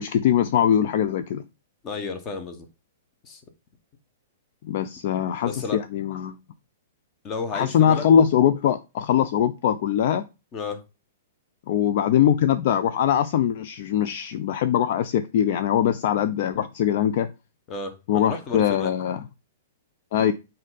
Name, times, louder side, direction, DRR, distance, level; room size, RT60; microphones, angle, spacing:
voice 1, 0.0-1.4 4.6-6.4 7.5-10.3 11.7-17.3 18.1-19.2 20.1-20.3, left 9 dB, 55° left, 0.3 m, -22 dB
voice 2, 1.8-2.7 3.2-3.4 5.3-5.8 7.2-8.1 10.5-10.8 17.7-19.0, left 4 dB, 30° left, 1.0 m, -32 dB
4.0 x 2.6 x 3.9 m
figure-of-eight pair, 110°, 0 cm